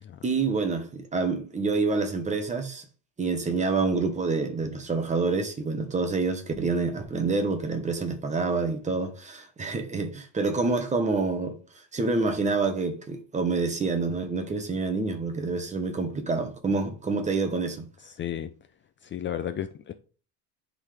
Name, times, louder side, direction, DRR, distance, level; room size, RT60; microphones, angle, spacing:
voice 1, 0.2-2.8 3.2-11.6 11.9-17.9, right 4 dB, 20° right, 1.1 m, -27 dB
voice 2, 18.0-18.5 19.0-19.9, left 10 dB, 30° left, 0.5 m, -33 dB
10.5 x 3.9 x 3.4 m
cardioid pair, 135°, 36 cm